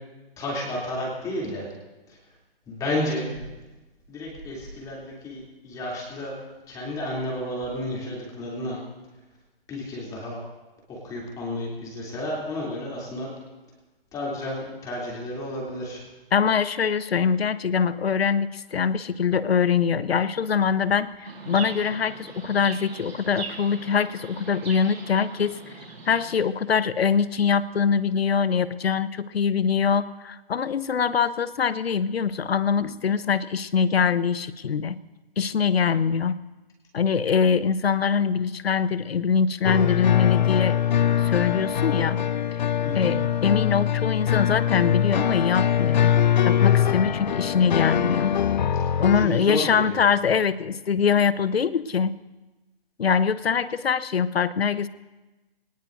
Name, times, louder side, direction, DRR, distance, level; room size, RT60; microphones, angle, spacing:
voice 1, 0.4-1.7 2.7-3.3 4.1-6.3 6.7-8.8 9.7-10.4 10.9-13.3 14.1-16.0 42.8-43.1 48.7-48.9 49.2-50.0, left 1 dB, 10° left, -4 dB, 3.0 m, -31 dB
voice 2, 16.3-25.6 26.1-35.0 35.4-36.4 36.9-40.8 41.2-42.2 42.9-46.1 46.4-48.3 49.0-52.1 53.0-54.9, left 6 dB, 80° left, 15 dB, 0.9 m, -23 dB
Chirp tweet, 21.2-26.4, right 4 dB, 90° right, 4.3 m, -40 dB
sound 1, 39.6-49.3, left 9 dB, 50° left, 0.5 m, -22 dB
23.5 x 19.0 x 2.6 m, 1.1 s
hypercardioid pair, 155°, 30 cm